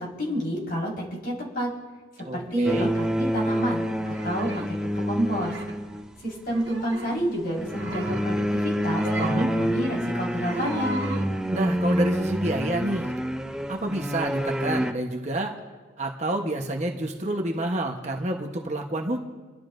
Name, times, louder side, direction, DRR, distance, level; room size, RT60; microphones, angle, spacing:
voice 1, 0.0-1.7 2.3-3.9 4.2-5.5 6.2-11.0, equal, 50° left, -4 dB, 4.8 m, -29 dB
voice 2, 2.3-2.9 9.2-9.5 11.5-13.1 13.7-15.5 16.0-19.2, right 1 dB, 35° right, 1 dB, 1.1 m, -28 dB
sound 1, 2.6-6.2 7.5-14.9, equal, 5° right, 0.5 m, -28 dB
sound 2, 4.1-4.7 5.4-5.8 6.5-7.2 7.6-8.3 8.8-9.5 10.2-11.3, right 2 dB, 60° right, 1.6 m, -35 dB
29.5 x 12.0 x 2.6 m, 1.3 s
head